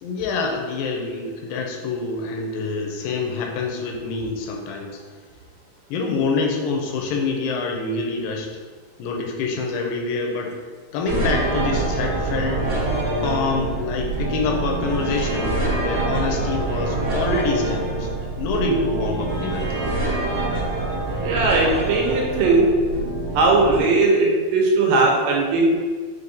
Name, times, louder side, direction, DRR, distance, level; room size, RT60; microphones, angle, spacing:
voice 1, 0.0-5.0 5.9-8.5 9.0-10.6 10.9-12.7 13.2-18.1 18.4-19.8, left 4 dB, 85° left, 1 dB, 2.3 m, -26 dB
sound 1, 11.1-23.8, right 2 dB, 60° right, 2.0 m, -25 dB
voice 2, 21.2-22.7 23.3-25.6, right 3 dB, 80° right, -1 dB, 2.2 m, -18 dB
6.1 x 2.6 x 2.6 m, 1.5 s
omnidirectional pair, 4.1 m